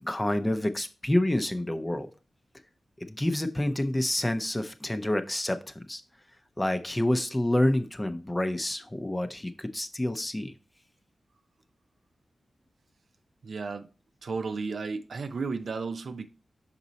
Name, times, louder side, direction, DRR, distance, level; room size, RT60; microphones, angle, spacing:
voice 1, 0.0-2.1 3.0-5.6 5.9-6.0 6.6-10.5, left 1 dB, 15° left, 0.6 m, -28 dB
voice 2, 13.4-13.9 14.2-16.3, right 4 dB, 70° right, 0.6 m, -33 dB
6.0 x 4.1 x 4.0 m
wide cardioid pair, 85°, 0 cm